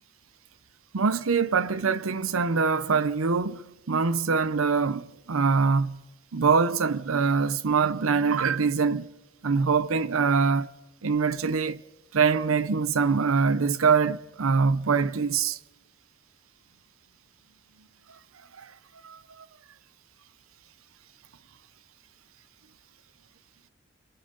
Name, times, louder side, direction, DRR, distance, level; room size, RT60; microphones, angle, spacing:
voice 1, 0.9-6.0 6.3-9.1 9.4-10.7 11.0-11.8 12.1-15.6 18.6-18.7 19.0-19.5, right 5 dB, 80° right, 0.7 m, -24 dB
30.0 x 23.5 x 4.0 m
head